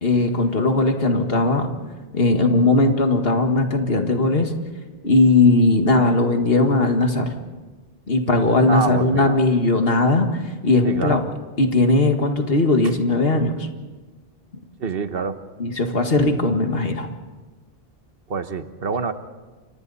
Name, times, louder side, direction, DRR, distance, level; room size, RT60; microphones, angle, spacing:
voice 1, 0.0-1.7 2.1-4.5 5.0-7.3 8.1-11.2 11.6-13.7 15.6-17.1, left 2 dB, 70° left, 5 dB, 2.0 m, -18 dB
voice 2, 8.7-9.4 10.8-11.2 14.8-15.4 18.3-19.1, right 5 dB, 70° right, 10 dB, 1.3 m, -26 dB
29.5 x 25.0 x 4.2 m, 1.3 s
omnidirectional pair, 1.0 m